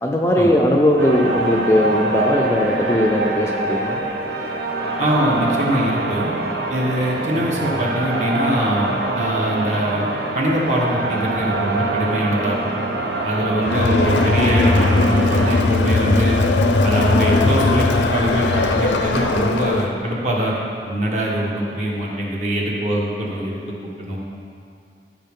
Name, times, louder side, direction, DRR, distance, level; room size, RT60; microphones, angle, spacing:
voice 1, 0.0-4.0 13.3-13.7, equal, 15° left, 0 dB, 0.5 m, -19 dB
sound 1, 1.0-15.6, right 2 dB, 70° right, 0.8 m, -24 dB
voice 2, 5.0-6.3 6.7-10.1 10.3-12.6 13.2-16.4 16.8-20.6 20.8-24.2, right 1 dB, 40° right, -3 dB, 1.3 m, -23 dB
Crowd, 13.6-19.9, left 3 dB, 85° left, 0.6 m, -18 dB
14.5 x 5.2 x 3.7 m, 2.5 s
head